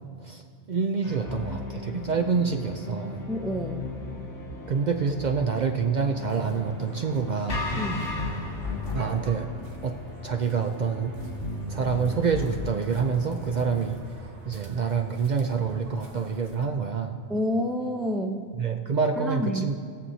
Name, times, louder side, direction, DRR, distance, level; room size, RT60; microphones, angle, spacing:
voice 1, 0.7-3.2 4.7-7.7 8.9-9.5 9.8-10.0 10.2-11.2 11.7-17.2 18.6-19.8, right 5 dB, 55° right, 5 dB, 0.5 m, -27 dB
sound 1, 1.0-13.9, left 2 dB, 85° left, 1.8 m, -36 dB
voice 2, 3.3-3.9 7.8-8.1 17.3-18.4 19.1-19.7, equal, ahead, 4 dB, 0.3 m, -29 dB
sound 2, 6.3-16.7, right 2 dB, 75° right, 1.4 m, -46 dB
20.5 x 7.2 x 2.7 m, 2.2 s
omnidirectional pair, 1.2 m